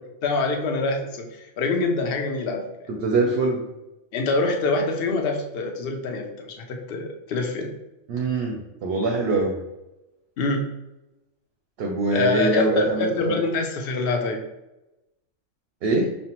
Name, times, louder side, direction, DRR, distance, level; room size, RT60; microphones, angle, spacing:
voice 1, 0.2-2.9 4.1-7.7 10.4-10.7 12.1-14.4, left 3 dB, 60° left, 3 dB, 0.7 m, -25 dB
voice 2, 2.9-3.6 8.1-9.6 11.8-13.4 15.8-16.1, right 3 dB, 65° right, 1 dB, 0.7 m, -23 dB
5.3 x 2.1 x 2.9 m, 0.95 s
omnidirectional pair, 1.3 m